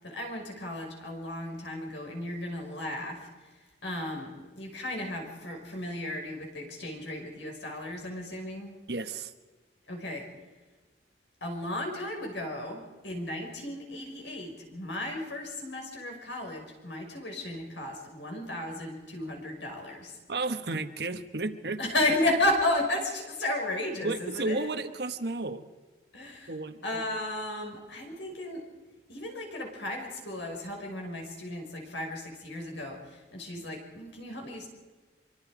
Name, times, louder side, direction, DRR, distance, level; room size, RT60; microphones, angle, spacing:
voice 1, 0.0-3.5 3.8-8.7 9.9-10.3 11.4-20.2 21.8-24.7 26.1-26.5 26.8-28.6 29.1-34.7, left 1 dB, 80° left, 2 dB, 5.8 m, -34 dB
voice 2, 8.9-9.3 20.3-21.8 24.0-25.7 26.5-26.8, right 3 dB, 60° right, 9 dB, 1.3 m, -32 dB
25.5 x 24.0 x 5.0 m, 1.3 s
head